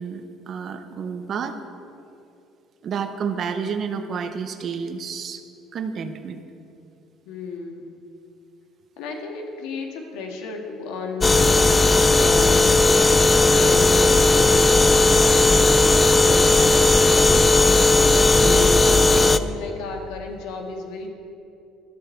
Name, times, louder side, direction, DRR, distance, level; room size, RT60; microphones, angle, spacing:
voice 1, 0.0-1.6 2.8-5.4 5.7-6.4 18.4-18.7, right 6 dB, 35° right, 8 dB, 0.8 m, -30 dB
voice 2, 7.3-8.0 9.0-14.7 15.1-17.8 18.3-21.1, left 3 dB, 80° left, 3 dB, 1.8 m, -33 dB
sound 1, 11.2-19.4, left 2 dB, 15° left, 0.3 m, -16 dB
13.0 x 12.5 x 4.6 m, 2.7 s
cardioid pair, 155°, 0 cm